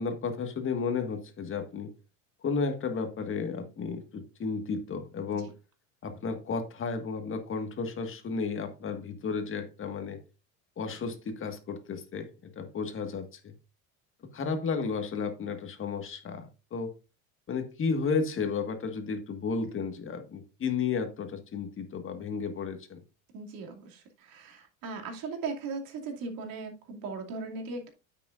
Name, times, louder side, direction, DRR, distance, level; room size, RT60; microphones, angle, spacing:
voice 1, 0.0-1.9 2.4-5.5 6.0-10.2 10.8-12.3 12.6-13.5 14.3-16.9 17.5-23.0, left 5 dB, 30° left, 1.7 m, -33 dB
voice 2, 23.3-27.9, right 4 dB, 55° right, 2.6 m, -38 dB
9.5 x 8.3 x 2.5 m
supercardioid pair, 120°, 42 cm